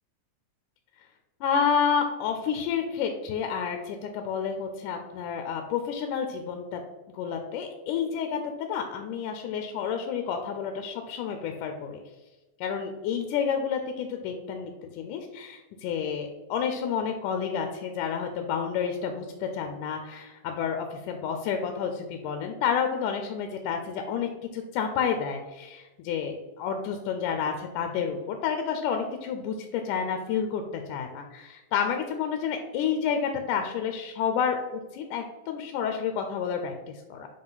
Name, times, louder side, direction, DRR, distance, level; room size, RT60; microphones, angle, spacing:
voice 1, 1.4-6.8 7.1-12.0 12.6-30.6 30.9-37.3, left 7 dB, 80° left, 5 dB, 2.1 m, -30 dB
5.6 x 5.1 x 3.9 m, 1.2 s
omnidirectional pair, 3.7 m